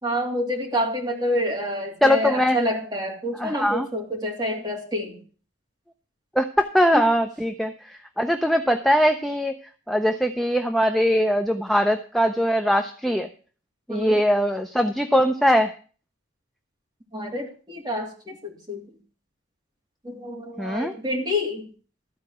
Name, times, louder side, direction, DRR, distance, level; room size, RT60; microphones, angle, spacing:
voice 1, 0.0-5.2 6.9-7.0 13.9-14.2 17.1-18.8 20.0-21.7, equal, 20° right, -2 dB, 2.9 m, -28 dB
voice 2, 2.0-2.6 3.4-3.9 6.4-9.6 9.9-13.3 13.9-15.7 20.6-20.9, equal, ahead, 5 dB, 0.5 m, -21 dB
13.5 x 4.7 x 7.7 m, 0.40 s
head